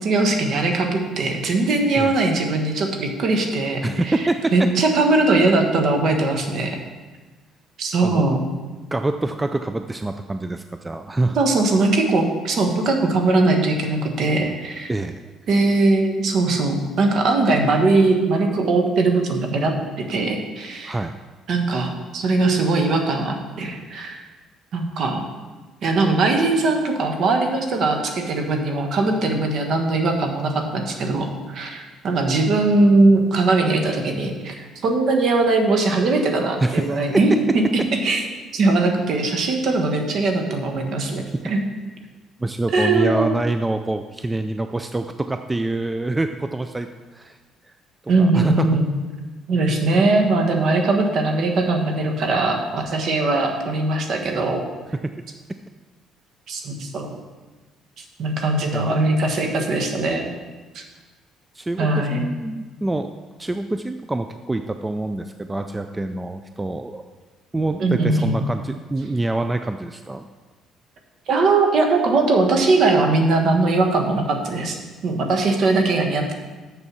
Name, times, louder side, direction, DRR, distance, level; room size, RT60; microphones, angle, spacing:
voice 1, 0.0-4.2 4.5-6.8 7.8-8.4 11.3-14.9 15.5-19.7 20.1-21.0 21.5-24.2 24.7-25.2 25.8-37.4 38.0-38.2 38.5-41.6 42.7-43.4 48.1-48.9 49.5-54.6 56.5-57.2 58.0-60.3 60.7-60.8 61.8-62.3 67.8-68.4 71.3-74.8 75.0-76.3, right 3 dB, 55° right, 3 dB, 1.3 m, -20 dB
voice 2, 3.8-4.7 8.0-8.2 8.9-11.4 14.9-15.3 20.8-21.1 36.6-36.8 37.1-37.2 42.4-47.4 48.2-48.7 54.9-55.1 58.7-58.9 61.5-63.1 63.4-67.0 67.5-70.3, right 2 dB, 10° right, 8 dB, 0.3 m, -25 dB
7.0 x 6.6 x 6.1 m, 1.3 s
cardioid pair, 135°, 0 cm